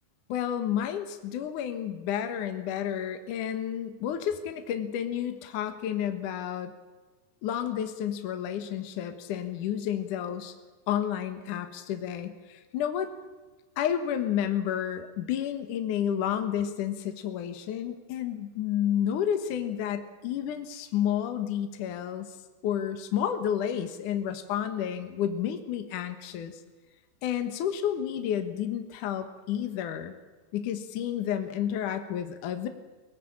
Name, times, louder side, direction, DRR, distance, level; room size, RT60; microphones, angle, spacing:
voice 1, 0.3-6.7 7.4-10.5 10.9-13.1 13.8-22.4 22.6-26.6 27.2-30.2 30.5-32.7, left 9 dB, 60° left, 8 dB, 2.5 m, -31 dB
24.5 x 16.0 x 8.8 m, 1.3 s
omnidirectional pair, 4.7 m